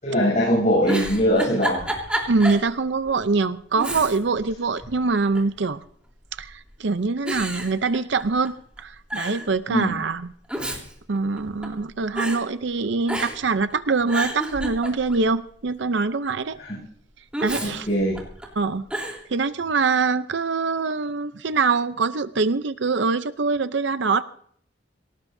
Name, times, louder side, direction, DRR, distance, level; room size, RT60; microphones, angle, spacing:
voice 1, 0.0-1.9 9.7-9.9 16.6-16.8 17.6-18.2, equal, 40° left, -6 dB, 7.4 m, -21 dB
Giggle, 0.7-2.7 3.1-3.2 3.7-4.4 4.8-5.6 6.3-6.7 7.3-8.5 8.8-8.9 9.1-9.5 10.3-11.8 12.2-12.4 13.1-13.5 13.9-15.3 17.3-18.5 18.9-19.2, right 1 dB, 5° right, 3.5 m, -30 dB
voice 2, 2.3-5.8 6.4-10.3 11.1-16.6 17.4-17.9 18.6-18.9 19.3-24.2, right 4 dB, 65° right, 12 dB, 0.6 m, -24 dB
26.0 x 18.0 x 2.7 m, 0.62 s
head